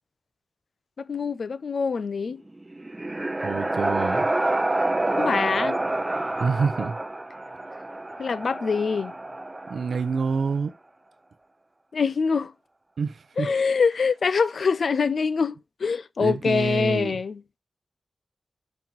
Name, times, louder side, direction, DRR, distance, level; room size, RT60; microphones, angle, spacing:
voice 1, 1.1-2.4 5.2-5.8 8.2-9.1 11.9-12.5 13.4-17.4, left 5 dB, 70° left, 0.4 m, -24 dB
sound 1, 2.5-10.4, right 2 dB, 20° right, 0.6 m, -28 dB
voice 2, 3.4-4.3 6.4-7.0 9.7-10.7 13.0-13.5 16.2-17.2, right 5 dB, 85° right, 0.7 m, -27 dB
5.4 x 4.5 x 6.0 m
wide cardioid pair, 90°, 0 cm